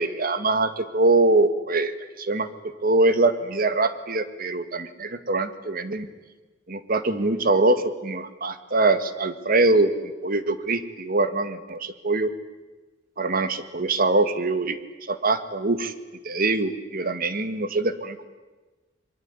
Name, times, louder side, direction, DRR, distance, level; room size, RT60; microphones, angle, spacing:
voice 1, 0.0-2.5 2.8-6.1 6.7-12.3 13.2-15.9 16.2-18.2, right 2 dB, 50° right, 11 dB, 1.9 m, -23 dB
25.0 x 23.5 x 9.7 m, 1.2 s
head